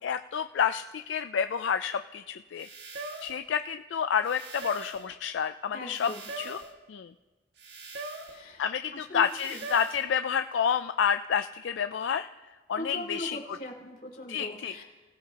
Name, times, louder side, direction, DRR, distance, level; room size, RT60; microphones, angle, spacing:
voice 1, 0.0-2.7 3.2-6.1 6.4-6.6 6.9-7.1 8.6-12.3 12.7-13.4 14.3-14.7, left 7 dB, 85° left, 9 dB, 0.4 m, -29 dB
sound 1, 1.7-1.8 2.6-3.4 4.2-5.1 5.9-6.7 7.6-8.4 9.2-10.1, right 2 dB, 65° right, 1.9 m, -41 dB
voice 2, 5.7-6.2 8.2-8.6 8.9-9.6 12.7-14.8, left 1 dB, 50° left, 0 dB, 3.3 m, -40 dB
29.5 x 16.0 x 2.9 m, 1.3 s
head